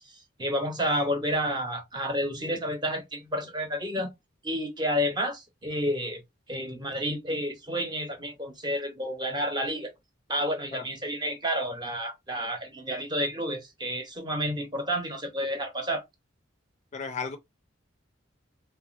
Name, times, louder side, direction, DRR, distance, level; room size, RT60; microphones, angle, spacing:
voice 1, 0.4-4.1 4.4-6.2 6.5-9.9 10.3-16.0, equal, 20° right, 0.8 m, -30 dB
voice 2, 16.9-17.4, left 5 dB, 35° left, 0.4 m, -34 dB
3.1 x 2.4 x 2.4 m
head